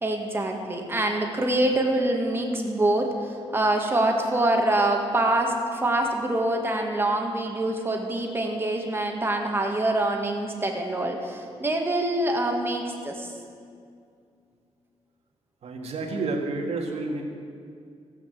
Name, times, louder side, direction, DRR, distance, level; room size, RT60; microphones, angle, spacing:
voice 1, 0.0-13.3, right 1 dB, 20° right, 2 dB, 1.8 m, -25 dB
voice 2, 15.6-17.2, right 3 dB, 65° right, 1 dB, 1.9 m, -30 dB
16.5 x 6.0 x 7.7 m, 2.3 s
cardioid pair, 95°, 12 cm